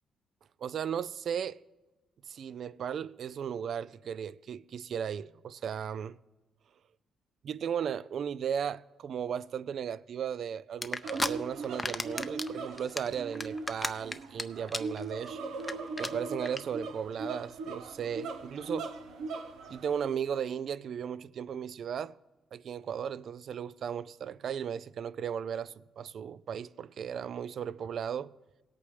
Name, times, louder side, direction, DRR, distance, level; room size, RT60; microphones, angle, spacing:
voice 1, 0.6-1.6 2.3-6.2 7.4-15.4 16.0-18.9 19.7-22.2 22.5-28.3, right 8 dB, 60° right, 0.3 m, -36 dB
sound 1, 10.8-11.3 11.6-12.5 12.8-14.4 14.7-15.0 15.3-15.4 15.6-15.7 16.0-16.1 16.5-16.6, left 2 dB, 15° left, 0.5 m, -32 dB
sound 2, 11.0-20.1, right 3 dB, 80° right, 0.9 m, -39 dB
18.0 x 8.4 x 3.3 m
cardioid pair, 90°, 0 cm